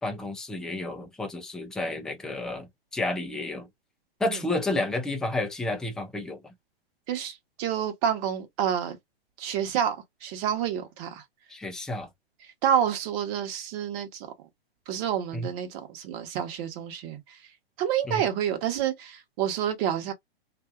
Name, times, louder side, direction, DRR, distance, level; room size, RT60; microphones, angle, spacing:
voice 1, 0.0-3.7 4.2-6.4 11.5-12.1 15.3-15.5 18.1-18.2, left 2 dB, ahead, 0.5 m, -31 dB
voice 2, 7.1-9.0 9.4-11.2 12.6-14.3 14.9-17.4 17.8-20.1, right 9 dB, 35° right, 1.1 m, -28 dB
2.6 x 2.4 x 2.3 m
hypercardioid pair, 120°, 31 cm